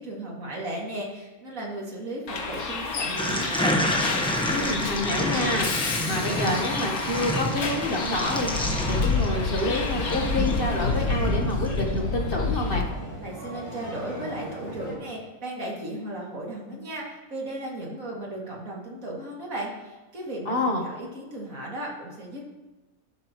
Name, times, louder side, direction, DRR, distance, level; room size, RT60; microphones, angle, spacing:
voice 1, 0.0-3.8 13.2-22.5, right 1 dB, 70° right, -3 dB, 2.8 m, -35 dB
Bus, 2.3-12.8, left 4 dB, 85° left, 1.7 m, -29 dB
sound 1, 3.2-11.8, equal, 5° left, 1.0 m, -29 dB
voice 2, 4.5-12.9 20.4-20.8, left 1 dB, 40° left, 1 dB, 1.4 m, -28 dB
sound 2, 7.5-14.9, right 1 dB, 35° right, 4.2 m, -38 dB
13.0 x 12.0 x 3.1 m, 1.1 s
omnidirectional pair, 1.5 m